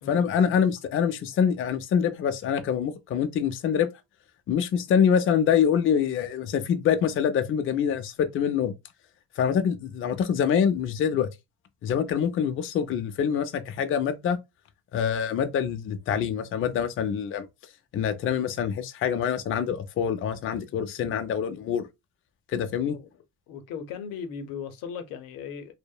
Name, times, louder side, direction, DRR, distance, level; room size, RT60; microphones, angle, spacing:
voice 1, 0.1-3.9 4.5-8.7 9.4-11.3 11.8-14.4 14.9-17.5 17.9-21.8 22.5-23.0, left 8 dB, 40° left, 0.4 m, -25 dB
voice 2, 23.5-25.7, left 7 dB, 90° left, 0.6 m, -38 dB
2.7 x 2.0 x 2.2 m
cardioid pair, 115°, 33 cm